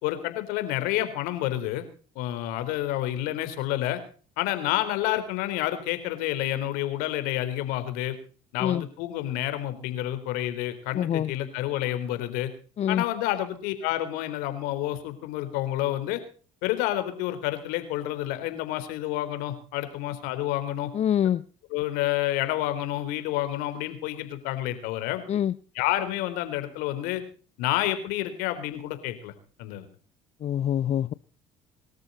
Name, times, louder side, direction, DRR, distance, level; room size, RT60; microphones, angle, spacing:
voice 1, 0.0-1.8 2.2-4.0 4.4-8.2 8.5-12.5 12.9-16.2 16.6-20.9 21.7-25.2 25.7-27.2 27.6-29.3 29.6-29.9, left 14 dB, 75° left, 3.8 m, -29 dB
voice 2, 10.9-11.3 12.8-13.0 20.9-21.4 25.3-25.5 30.4-31.1, left 10 dB, 45° left, 0.7 m, -25 dB
24.5 x 13.5 x 4.1 m
hypercardioid pair, 70°, 15 cm